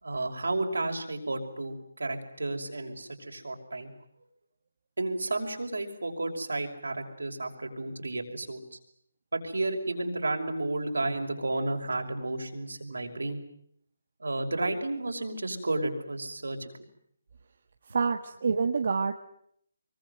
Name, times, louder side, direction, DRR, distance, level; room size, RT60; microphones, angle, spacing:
voice 1, 0.0-3.9 5.0-8.8 9.3-13.4 14.2-16.7, right 2 dB, 85° right, 3 dB, 5.7 m, -32 dB
voice 2, 17.9-19.1, right 5 dB, 60° right, 6 dB, 1.7 m, -27 dB
25.0 x 23.5 x 9.4 m, 0.70 s
figure-of-eight pair, 155°, 0 cm